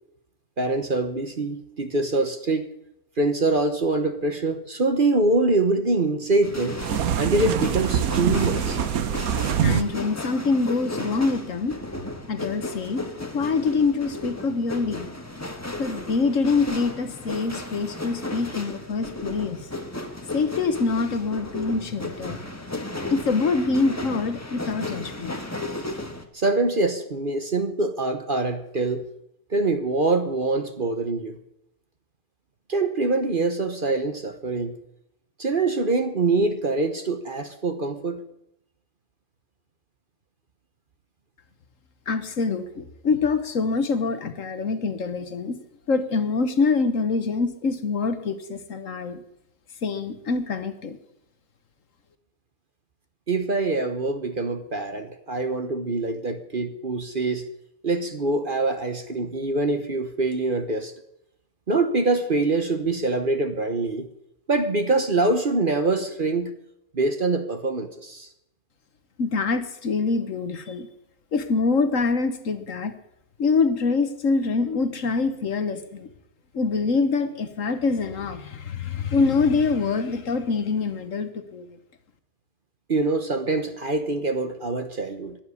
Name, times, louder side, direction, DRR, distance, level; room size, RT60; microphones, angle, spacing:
voice 1, 0.6-2.7 3.2-6.8 7.2-8.8 26.3-29.0 29.5-31.4 32.7-34.8 35.4-38.2 53.3-57.5 57.8-60.9 61.7-64.1 64.5-66.5 66.9-68.3 82.9-85.4, right 3 dB, 40° right, 8 dB, 1.1 m, -24 dB
sound 1, 6.4-26.3, left 2 dB, 10° left, 1.3 m, -34 dB
sound 2, 6.8-9.8, right 9 dB, 70° right, 1.3 m, -24 dB
voice 2, 9.6-11.8 12.3-13.0 13.3-15.1 15.8-19.6 20.3-22.4 23.1-25.4 42.1-45.6 45.9-49.2 49.8-51.0 69.2-70.9 71.3-73.0 73.4-76.1 76.5-81.7, left 4 dB, 60° left, 10 dB, 1.5 m, -25 dB
12.0 x 11.0 x 9.7 m, 0.81 s
omnidirectional pair, 1.6 m